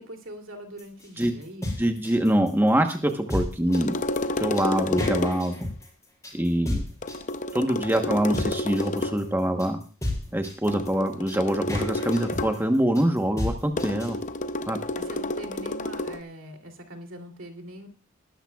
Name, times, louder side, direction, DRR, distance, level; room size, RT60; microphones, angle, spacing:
voice 1, 0.0-1.9 15.0-17.9, right 1 dB, 70° right, 4 dB, 2.9 m, -42 dB
sound 1, 0.8-14.2, left 1 dB, 15° left, 6.3 m, -33 dB
voice 2, 1.8-4.0 4.4-5.6 6.3-6.8 7.5-9.8 10.3-14.2 14.7-14.8, right 1 dB, 10° right, 4 dB, 1.1 m, -24 dB
sound 2, 3.7-5.6 7.0-9.3 10.7-12.7 13.8-16.2, left 2 dB, 35° left, 0.6 m, -30 dB
21.0 x 12.5 x 2.4 m, 0.37 s
head